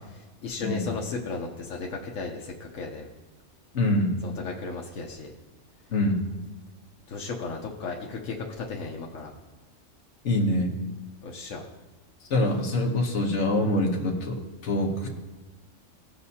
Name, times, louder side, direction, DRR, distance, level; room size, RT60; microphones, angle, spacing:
voice 1, 0.1-3.1 4.2-5.3 7.1-9.3 11.2-11.6, left 4 dB, 85° left, 0 dB, 1.2 m, -35 dB
voice 2, 3.7-4.2 5.9-6.2 10.2-10.7 12.3-15.1, left 1 dB, 65° left, 0 dB, 1.3 m, -25 dB
16.0 x 5.4 x 2.8 m, 1.2 s
omnidirectional pair, 1.3 m